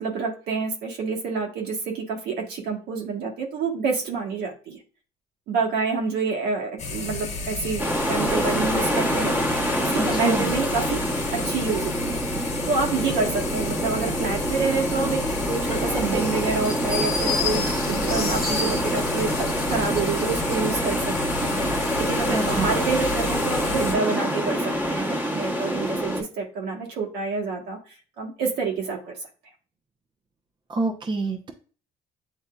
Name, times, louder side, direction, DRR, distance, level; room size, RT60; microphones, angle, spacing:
voice 1, 0.0-4.8 5.5-9.3 9.9-11.0 11.3-15.2 15.5-21.0 22.0-27.8 28.2-29.1, right 4 dB, 80° right, 1 dB, 1.4 m, -27 dB
sound 1, 6.8-23.9, left 3 dB, 40° left, 1.1 m, -32 dB
sound 2, 7.8-26.2, equal, 10° right, 1.2 m, -26 dB
voice 2, 9.9-10.5 22.3-22.7 30.7-31.5, right 3 dB, 25° right, 4 dB, 0.7 m, -26 dB
sound 3, 16.6-20.6, left 4 dB, 20° left, 1.2 m, -31 dB
8.0 x 2.7 x 2.3 m, 0.39 s
cardioid pair, 110°, 17 cm